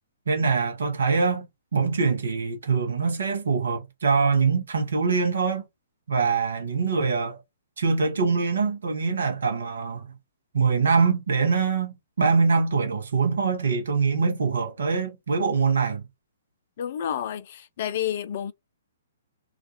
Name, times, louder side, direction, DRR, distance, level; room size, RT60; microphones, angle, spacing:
voice 1, 0.3-1.5 1.7-5.6 6.1-7.4 7.8-10.1 10.5-16.0, right 5 dB, 65° right, 0.9 m, -23 dB
voice 2, 16.8-18.5, left 10 dB, 50° left, 0.3 m, -30 dB
2.4 x 2.3 x 2.7 m
figure-of-eight pair, 120°, 0 cm